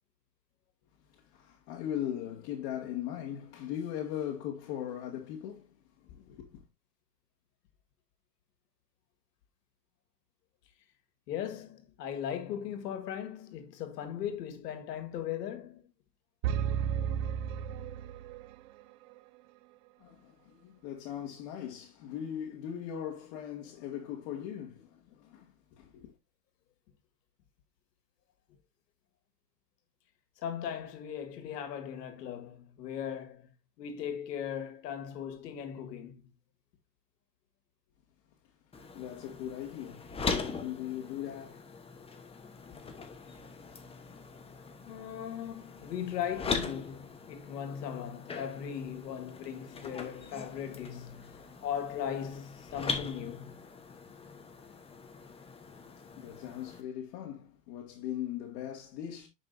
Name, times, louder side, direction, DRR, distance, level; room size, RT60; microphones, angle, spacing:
voice 1, 1.1-6.7 20.0-26.1 38.9-41.7 42.7-42.9 55.8-59.3, left 10 dB, 50° left, 2.0 m, -39 dB
voice 2, 11.3-15.8 30.4-33.5 33.8-36.2 44.9-53.5, left 9 dB, 75° left, 2.0 m, -38 dB
sound 1, 16.4-18.5, right 9 dB, 50° right, 0.7 m, -32 dB
sound 2, 38.7-56.8, left 4 dB, 10° left, 1.1 m, -41 dB
9.8 x 5.6 x 2.6 m
supercardioid pair, 140°, 48 cm